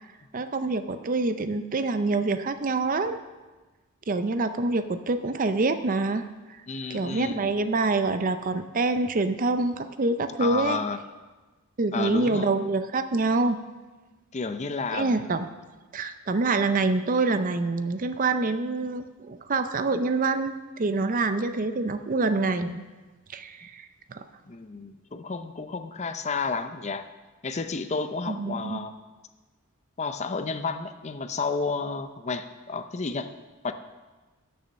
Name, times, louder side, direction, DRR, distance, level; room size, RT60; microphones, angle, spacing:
voice 1, 0.3-3.2 4.1-6.3 6.9-10.8 11.8-13.6 14.9-15.5 15.9-22.8 23.3-24.3 28.3-28.8, right 3 dB, 40° right, 10 dB, 0.5 m, -26 dB
voice 2, 6.7-7.5 10.4-11.0 11.9-12.5 14.3-15.3 24.5-27.0 27.4-28.9 30.0-33.3 33.6-33.7, left 4 dB, 30° left, 9 dB, 0.5 m, -31 dB
12.5 x 7.0 x 5.4 m, 1.2 s
head